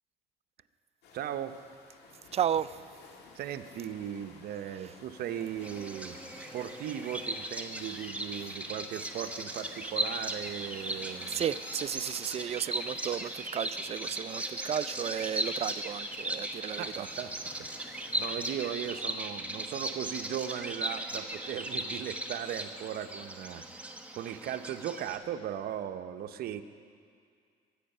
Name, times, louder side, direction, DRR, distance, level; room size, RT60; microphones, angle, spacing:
sound 1, 1.0-19.0, left 4 dB, 75° left, 2.1 m, -53 dB
voice 1, 1.1-1.6 3.4-6.2 6.5-11.4 16.7-17.3 18.2-23.9 24.1-26.6, right 10 dB, 65° right, 9 dB, 0.8 m, -37 dB
voice 2, 2.3-2.8 4.8-4.9 8.4-8.5 11.3-17.1, right 9 dB, 40° right, 16 dB, 0.3 m, -33 dB
Bird vocalization bird call bird song, 5.6-25.2, right 1 dB, 10° right, 1.1 m, -37 dB
23.0 x 8.7 x 5.5 m, 2.3 s
cardioid pair, 110°, 17 cm